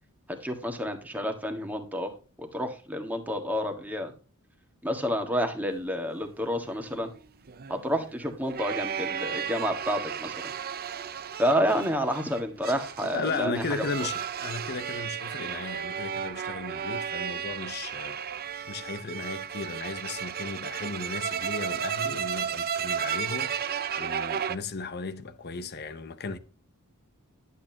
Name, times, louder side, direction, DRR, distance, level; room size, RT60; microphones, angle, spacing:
voice 1, 0.3-2.1 2.4-4.1 4.8-7.1 7.7-10.3 11.4-13.9, equal, 10° right, 1.7 m, -29 dB
sound 1, 6.8-24.6, right 8 dB, 45° right, 0.6 m, -34 dB
voice 2, 13.1-26.4, left 3 dB, 45° left, 0.8 m, -36 dB
11.5 x 8.3 x 2.9 m
head